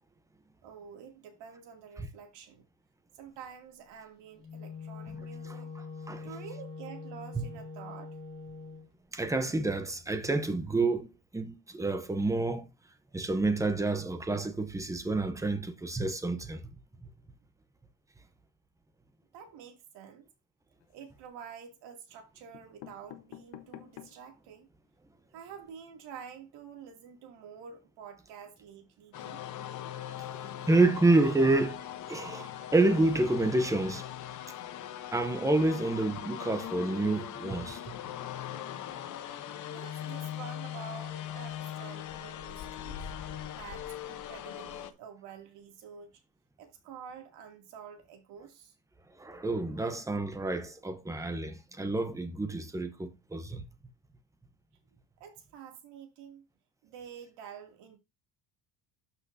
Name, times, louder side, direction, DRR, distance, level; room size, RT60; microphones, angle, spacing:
voice 1, 0.6-2.6 3.1-5.7 6.2-8.4 19.3-20.2 20.9-24.7 25.3-29.4 39.7-43.0 43.5-46.2 46.6-48.7 55.2-56.4 56.8-58.0, right 7 dB, 80° right, 2.6 m, -48 dB
Wind instrument woodwind instrument, 4.4-8.9, left 4 dB, 10° left, 3.9 m, -43 dB
voice 2, 5.4-6.2 7.3-7.4 9.1-12.7 13.1-16.6 17.0-17.1 30.7-31.8 32.1-34.1 35.1-37.9 49.2-53.6, right 2 dB, 10° right, 0.7 m, -28 dB
sound 1, 20.8-21.4 22.2-22.3 22.5-24.3 24.8-24.9 25.1-25.2 25.5-25.7, left 12 dB, 85° left, 1.1 m, -50 dB
sound 2, 29.1-44.9, left 11 dB, 45° left, 0.9 m, -40 dB
12.0 x 5.8 x 2.7 m
cardioid pair, 155°, 42 cm